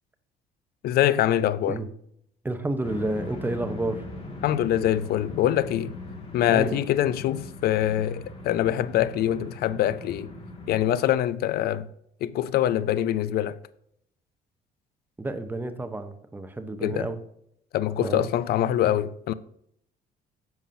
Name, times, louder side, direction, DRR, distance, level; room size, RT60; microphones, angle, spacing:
voice 1, 0.8-1.8 4.4-5.9 6.3-10.3 10.7-11.9 12.2-13.6 16.8-17.1 17.7-19.3, left 12 dB, 65° left, 0.5 m, -24 dB
voice 2, 2.4-4.0 6.5-6.8 15.2-17.2 18.0-18.3, right 2 dB, 10° right, 0.9 m, -30 dB
sound 1, 2.8-10.8, left 2 dB, 35° left, 2.2 m, -40 dB
10.5 x 7.3 x 2.8 m
cardioid pair, 110°, 17 cm